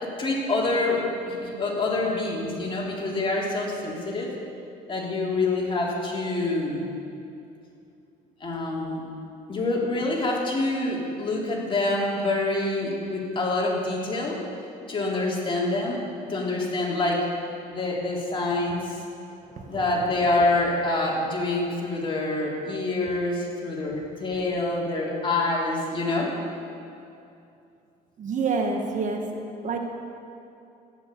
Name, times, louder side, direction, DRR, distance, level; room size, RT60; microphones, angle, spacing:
voice 1, 0.0-4.3 4.9-6.9 8.4-9.0 9.5-14.4 14.9-16.0 16.3-17.3 17.7-19.0 19.7-26.3, left 2 dB, 30° left, -3 dB, 3.1 m, -26 dB
voice 2, 28.2-29.2 29.6-29.8, right 4 dB, 50° right, 3 dB, 1.5 m, -27 dB
13.5 x 10.5 x 6.7 m, 2.7 s
cardioid pair, 110°, 17 cm